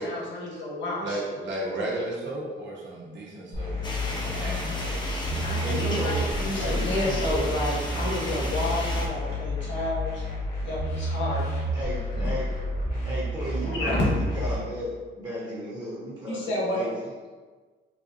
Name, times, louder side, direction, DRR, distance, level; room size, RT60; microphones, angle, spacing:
voice 1, 0.0-1.2 5.4-11.7 13.7-14.0 16.3-16.9, left 1 dB, 70° left, -5 dB, 1.2 m, -31 dB
voice 2, 1.0-5.0, right 1 dB, 70° right, -4 dB, 1.0 m, -34 dB
sound 1, 3.5-14.6, equal, 45° left, 1.3 m, -30 dB
sound 2, 3.8-9.1, left 1 dB, 20° left, 0.7 m, -34 dB
voice 3, 5.6-7.5 11.7-12.5 13.0-17.1, equal, 20° right, -7 dB, 1.2 m, -34 dB
4.0 x 2.5 x 2.8 m, 1.4 s
cardioid pair, 90°, 20 cm